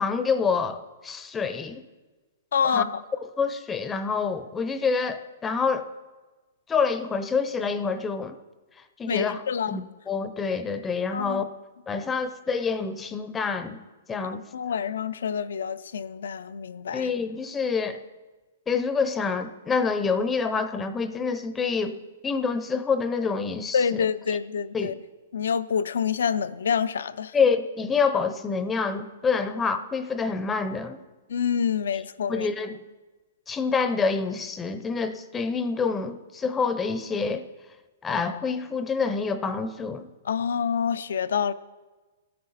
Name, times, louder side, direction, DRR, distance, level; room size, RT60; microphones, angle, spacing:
voice 1, 0.0-1.8 2.6-2.9 3.4-5.9 6.7-8.4 9.0-9.4 9.7-11.5 11.9-13.8 14.1-14.4 16.9-18.0 18.7-22.0 22.2-24.1 24.7-25.0 27.3-31.0 31.9-32.0 32.3-32.8 33.5-37.4 38.0-40.1, left 5 dB, 15° left, 0.5 m, -27 dB
voice 2, 2.5-2.8 9.1-9.8 11.1-11.4 14.2-17.1 23.7-24.9 25.3-27.3 31.3-32.5 40.3-41.5, left 7 dB, 80° left, 0.5 m, -27 dB
15.0 x 9.5 x 4.1 m
hypercardioid pair, 155°, 0 cm